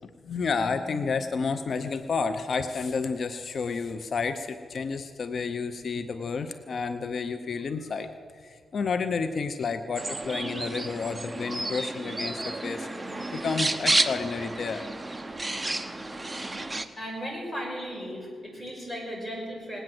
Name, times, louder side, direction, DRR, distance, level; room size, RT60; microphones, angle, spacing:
voice 1, 0.0-8.1 8.4-12.9 13.3-14.8, left 5 dB, 60° left, 9 dB, 0.7 m, -30 dB
sound 1, 10.0-16.9, right 2 dB, 20° right, 0.8 m, -31 dB
voice 2, 17.0-19.8, equal, ahead, -3 dB, 5.7 m, -36 dB
19.5 x 9.0 x 7.7 m, 2.1 s
cardioid pair, 90°, 0 cm